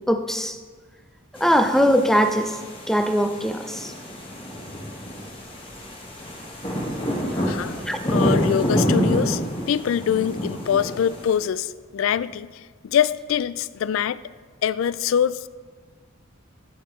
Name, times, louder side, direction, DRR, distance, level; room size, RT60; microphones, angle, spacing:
voice 1, 0.1-0.6 1.4-2.6 2.9-3.9 7.9-8.0, equal, ahead, 7 dB, 0.4 m, -21 dB
sound 1, 1.4-11.3, equal, 25° left, 1.3 m, -27 dB
voice 2, 7.5-7.8 8.1-9.4 9.7-14.2 14.6-15.5, left 8 dB, 75° left, 17 dB, 0.3 m, -24 dB
14.0 x 7.1 x 3.1 m, 1.4 s
head